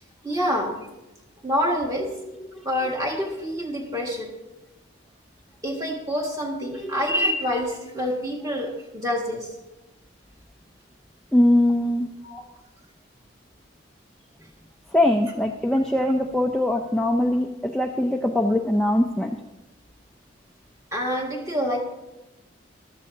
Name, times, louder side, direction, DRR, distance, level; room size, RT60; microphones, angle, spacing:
voice 1, 0.2-0.8 1.4-2.1 2.6-4.3 5.6-9.5 12.2-12.4 20.9-21.8, equal, 15° right, 0 dB, 1.8 m, -26 dB
voice 2, 11.3-12.1 14.9-19.3, left 1 dB, 5° left, 1 dB, 0.5 m, -22 dB
15.0 x 12.5 x 2.8 m, 1.0 s
head